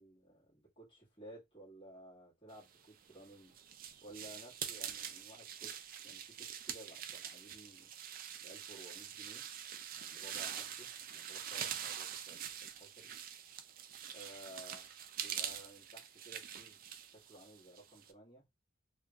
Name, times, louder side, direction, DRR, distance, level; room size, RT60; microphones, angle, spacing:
voice 1, 0.0-3.5 4.0-7.9 8.4-9.4 10.0-13.1 14.1-16.8 17.3-18.4, right 1 dB, 25° left, 1.8 m, -56 dB
sound 1, 2.9-18.1, right 9 dB, 45° right, 0.4 m, -45 dB
3.6 x 2.6 x 2.3 m
head